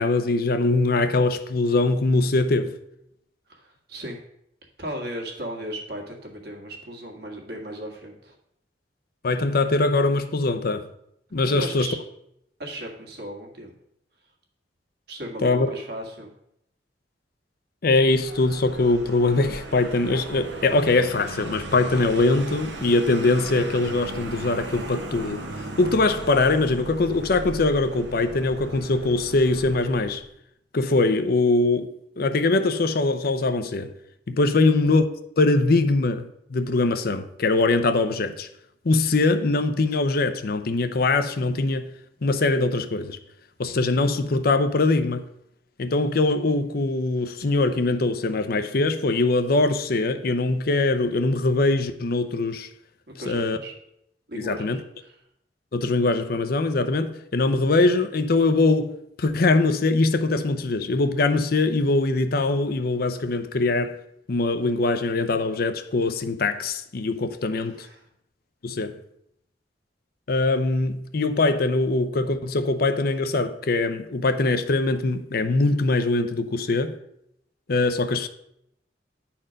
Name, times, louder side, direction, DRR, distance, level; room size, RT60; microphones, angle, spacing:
voice 1, 0.0-2.8 9.2-10.9 11.3-11.9 15.4-15.7 17.8-30.2 30.7-33.9 34.3-35.0 35.4-38.5 38.8-41.9 42.2-43.2 43.6-45.3 45.8-52.7 53.3-53.6 54.3-54.8 55.7-64.0 64.3-67.9 68.6-69.0 70.3-77.0 77.7-78.3, left 3 dB, 55° left, 0.6 m, -22 dB
voice 2, 3.5-4.2 4.8-8.4 11.5-12.0 12.6-13.7 15.1-16.3 34.6-34.7 53.1-53.7 54.3-55.2 67.6-68.1, right 1 dB, 60° right, 1.7 m, -36 dB
Vehicle, 18.0-30.3, right 2 dB, 80° right, 1.2 m, -37 dB
9.9 x 4.4 x 5.1 m
head